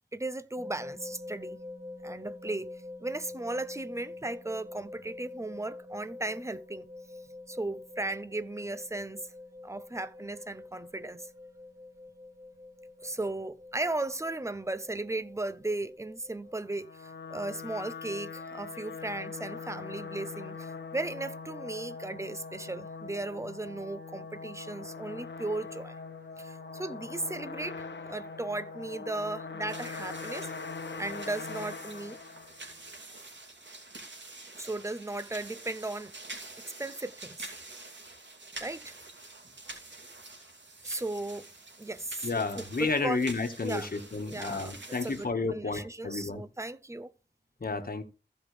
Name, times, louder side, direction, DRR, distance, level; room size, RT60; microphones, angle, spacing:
voice 1, 0.1-1.6 2.0-6.9 7.5-9.3 9.6-11.3 13.0-26.0 26.4-32.2 34.6-36.1 36.6-37.5 38.6-39.0 40.8-41.4 41.8-42.3 42.6-43.2 43.6-43.9 44.2-47.1, right 2 dB, 15° right, 0.7 m, -36 dB
sound 1, 0.6-16.6, left 2 dB, 60° right, 3.0 m, -46 dB
sound 2, 16.6-32.9, left 4 dB, 75° left, 1.0 m, -42 dB
sound 3, 29.7-45.3, right 2 dB, 80° right, 2.9 m, -47 dB
voice 2, 42.2-46.4 47.6-48.0, left 3 dB, 55° left, 1.5 m, -31 dB
15.0 x 5.3 x 3.3 m
wide cardioid pair, 60°, 19 cm